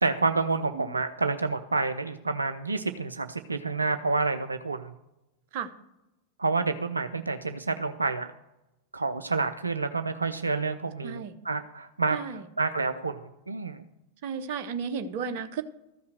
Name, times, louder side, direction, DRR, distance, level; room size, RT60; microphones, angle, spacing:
voice 1, 0.0-4.9 6.4-8.3 8.9-13.8, right 3 dB, 80° right, 9 dB, 0.5 m, -29 dB
voice 2, 11.0-11.4 12.1-12.5 14.2-15.6, right 6 dB, 50° right, 8 dB, 0.9 m, -33 dB
13.5 x 5.6 x 7.7 m, 0.93 s
figure-of-eight pair, 90°, 0 cm